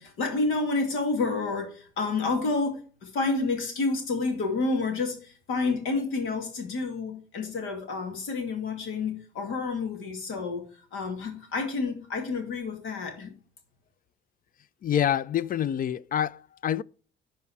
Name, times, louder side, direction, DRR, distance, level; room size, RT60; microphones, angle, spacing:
voice 1, 0.0-10.6 10.9-13.3, left 3 dB, 90° left, 2.4 m, -29 dB
voice 2, 14.8-16.8, left 10 dB, 45° left, 0.4 m, -27 dB
11.0 x 4.3 x 4.8 m
cardioid pair, 90°, 20 cm